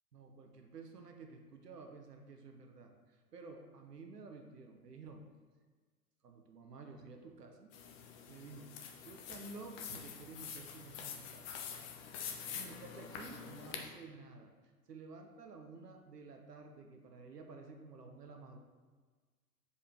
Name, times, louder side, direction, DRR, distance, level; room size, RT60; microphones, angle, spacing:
voice 1, 0.1-5.2 6.2-7.7 8.3-8.8 9.0-11.6 12.4-18.6, right 4 dB, 80° right, 4 dB, 0.9 m, -52 dB
sound 1, 7.7-13.9, left 7 dB, 40° left, 0.8 m, -46 dB
6.7 x 5.0 x 2.8 m, 1.4 s
figure-of-eight pair, 95°, 47 cm